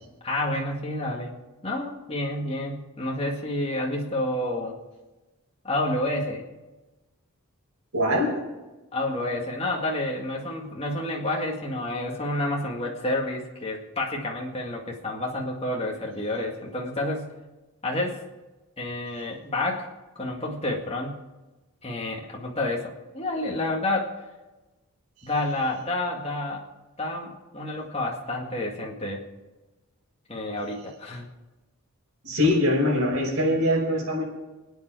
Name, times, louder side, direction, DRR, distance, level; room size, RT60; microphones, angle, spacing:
voice 1, 0.2-1.3 1.6-4.8 5.6-6.4 8.9-17.3 17.8-18.2 18.8-21.2 21.8-24.1 25.2-26.6 27.0-29.3 30.3-31.3, left 1 dB, 25° left, -1 dB, 2.0 m, -29 dB
voice 2, 7.9-8.4 32.2-34.2, left 1 dB, 80° right, -1 dB, 5.6 m, -23 dB
27.0 x 9.2 x 4.7 m, 1.1 s
head